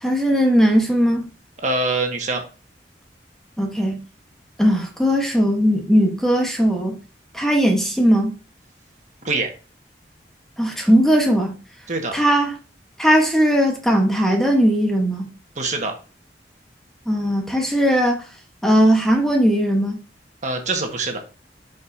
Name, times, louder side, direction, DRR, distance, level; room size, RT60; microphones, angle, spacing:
voice 1, 0.0-1.3 3.6-4.0 4.6-7.0 7.3-8.3 10.6-11.6 12.1-12.5 13.0-15.3 17.1-18.2 18.6-20.0, equal, 5° left, 1.2 m, -18 dB
voice 2, 1.6-2.4 9.2-9.5 11.9-12.1 15.6-15.9 20.4-21.2, right 3 dB, 45° right, 1.6 m, -24 dB
11.0 x 5.3 x 2.7 m
head